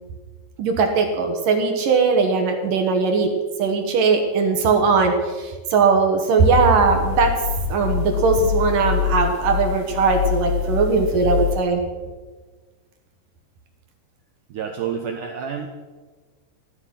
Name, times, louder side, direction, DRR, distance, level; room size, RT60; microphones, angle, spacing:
voice 1, 0.6-3.3 3.6-7.4 7.7-11.8, right 4 dB, 65° right, 4 dB, 2.5 m, -19 dB
sound 1, 6.4-11.6, left 11 dB, 75° left, 2.1 m, -25 dB
voice 2, 14.5-15.7, right 7 dB, 80° right, 3 dB, 1.9 m, -28 dB
15.5 x 12.0 x 5.8 m, 1.4 s
omnidirectional pair, 5.2 m